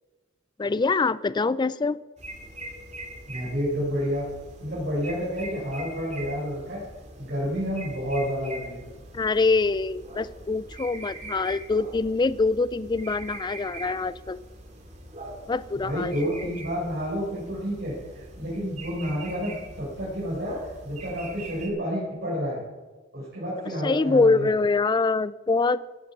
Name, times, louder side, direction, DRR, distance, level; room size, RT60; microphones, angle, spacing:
voice 1, 0.6-2.0 9.1-14.4 15.5-16.1 16.4-16.5 23.8-25.8, left 3 dB, 20° left, 0.3 m, -24 dB
sound 1, 2.2-21.7, right 2 dB, 35° right, 2.5 m, -43 dB
voice 2, 3.3-4.2 4.6-6.8 7.2-8.8 9.1-9.2 15.7-22.6 23.1-24.5, equal, 60° right, 5.1 m, -30 dB
16.0 x 8.9 x 6.0 m
head